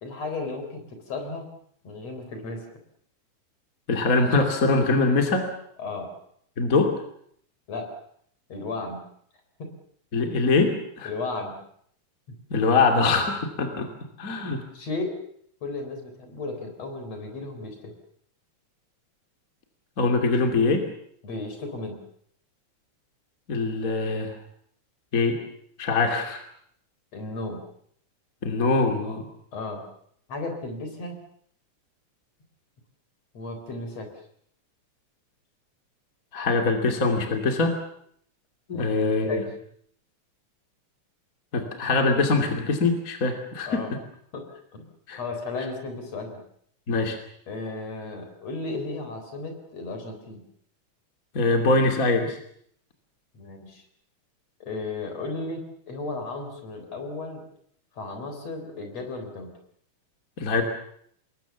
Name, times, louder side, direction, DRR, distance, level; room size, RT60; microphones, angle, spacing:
voice 1, 0.0-1.5 1.8-2.7 5.8-6.1 7.7-7.9 8.5-9.0 9.6-9.7 10.7-10.8 11.0-11.6 12.3-12.4 14.3-15.2 15.6-17.9 21.2-22.0 27.1-27.6 29.5-29.8 30.3-31.2 33.3-34.1 38.7-39.5 43.7-43.9 44.3-44.9 45.2-46.4 47.5-50.4 53.3-53.8 54.6-57.4 58.0-59.5, left 3 dB, 55° left, 6 dB, 5.0 m, -34 dB
voice 2, 3.9-5.5 6.6-6.9 10.1-11.1 12.5-13.9 14.2-14.6 20.0-20.9 23.5-24.4 25.1-25.4 25.8-26.4 28.4-29.3 36.3-37.8 38.7-39.4 41.5-43.8 45.1-45.2 46.9-47.2 51.3-52.4 60.4-60.6, left 3 dB, 30° left, 4 dB, 2.8 m, -23 dB
27.0 x 21.5 x 7.1 m, 0.67 s
omnidirectional pair, 3.5 m